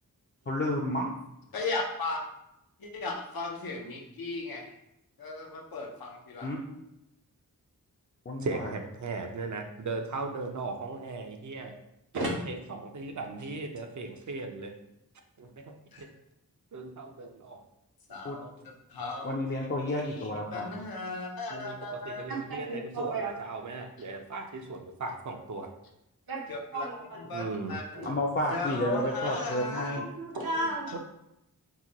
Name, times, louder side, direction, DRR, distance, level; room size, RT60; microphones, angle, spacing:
voice 1, 0.5-1.1 6.4-6.6 8.3-8.7 18.2-18.4 19.2-20.7 28.0-30.0, left 1 dB, 30° left, -2 dB, 0.4 m, -31 dB
voice 2, 1.5-2.2 2.8-4.7 5.2-6.5 15.9-16.0 18.1-18.5 18.9-19.3 19.8-22.2 26.5-26.9 27.3-28.1 28.5-30.0 30.5-30.6, left 3 dB, 90° left, 0 dB, 0.6 m, -36 dB
voice 3, 8.4-11.7 12.1-14.7 15.4-16.1 16.7-17.6 21.5-25.7 27.3-27.8 30.9-31.0, right 3 dB, 55° right, 4 dB, 0.5 m, -37 dB
voice 4, 22.3-23.3 26.3-26.4 26.7-27.2 27.9-28.1 29.7-31.0, right 2 dB, 85° right, -2 dB, 0.8 m, -34 dB
2.9 x 2.2 x 3.7 m, 0.84 s
wide cardioid pair, 55°, 35 cm